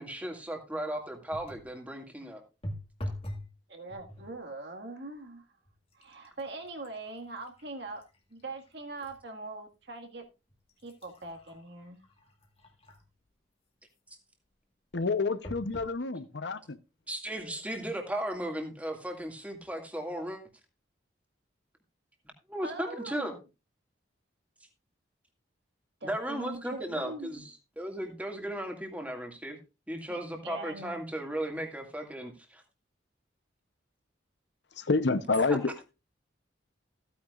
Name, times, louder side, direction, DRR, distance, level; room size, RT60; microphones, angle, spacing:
voice 1, 0.0-2.4 17.1-20.4 22.5-23.3 26.0-29.6 29.9-32.6 35.5-35.6, right 1 dB, 10° right, 2.1 m, -36 dB
sound 1, 1.3-1.7 2.6-3.5 3.9-4.4 5.1-5.3 5.7-9.2 9.7-9.8 10.5-13.2 15.4-16.0 16.6-16.7 17.0-17.1, equal, 30° left, 2.0 m, -44 dB
voice 2, 3.7-5.4 5.9-8.0 8.3-10.3 10.8-12.0 22.6-23.4 26.0-27.4 30.1-31.0, right 2 dB, 60° right, 1.9 m, -42 dB
voice 3, 14.9-16.8 34.8-35.7, left 3 dB, 65° left, 0.8 m, -28 dB
15.0 x 9.4 x 2.4 m
head